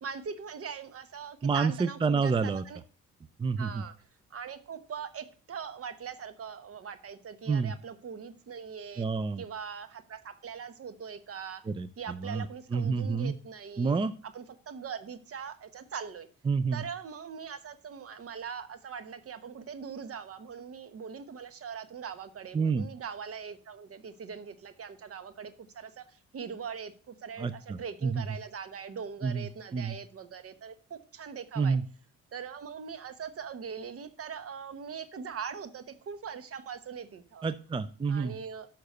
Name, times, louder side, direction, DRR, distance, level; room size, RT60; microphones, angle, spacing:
voice 1, 0.0-2.8 3.6-3.9 4.3-9.1 9.4-11.6 12.0-13.9 14.3-16.3 16.7-31.8 32.3-37.4 38.1-38.7, right 6 dB, 50° right, 11 dB, 1.0 m, -41 dB
voice 2, 1.4-2.6 3.4-3.8 7.5-7.7 9.0-9.4 11.7-12.5 12.7-13.4 13.8-14.1 16.5-16.8 22.5-22.9 27.4-28.2 29.2-29.5 29.7-30.0 31.6-31.8 37.4-38.3, right 5 dB, 20° right, 14 dB, 0.4 m, -29 dB
6.4 x 5.8 x 6.6 m, 0.40 s
cardioid pair, 90°, 30 cm